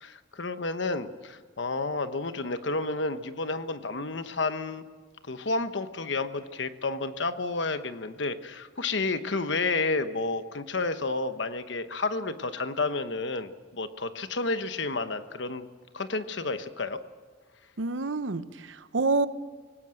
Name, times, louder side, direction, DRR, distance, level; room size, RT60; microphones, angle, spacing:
voice 1, 0.0-4.8 5.3-15.7 15.9-17.0, left 3 dB, 70° left, 10 dB, 1.1 m, -31 dB
voice 2, 17.8-19.3, right 3 dB, 75° right, 13 dB, 0.9 m, -28 dB
25.0 x 18.0 x 7.8 m, 1.5 s
head